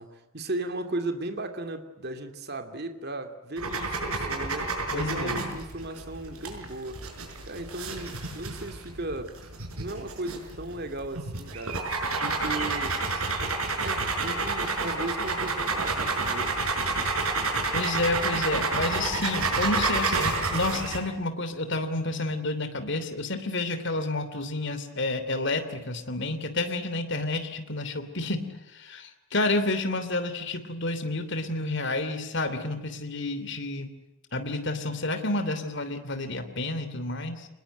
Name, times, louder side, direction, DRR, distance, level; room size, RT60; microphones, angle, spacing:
voice 1, 0.0-7.0 7.4-9.3 9.7-11.8 12.2-13.0 13.8-16.6, right 2 dB, 50° right, 7 dB, 2.7 m, -36 dB
sound 1, 3.6-21.0, right 3 dB, 85° right, 6.0 m, -29 dB
voice 2, 4.9-5.5 17.7-33.9 34.3-37.5, left 2 dB, 55° left, 9 dB, 3.0 m, -30 dB
25.5 x 20.5 x 9.3 m, 0.97 s
head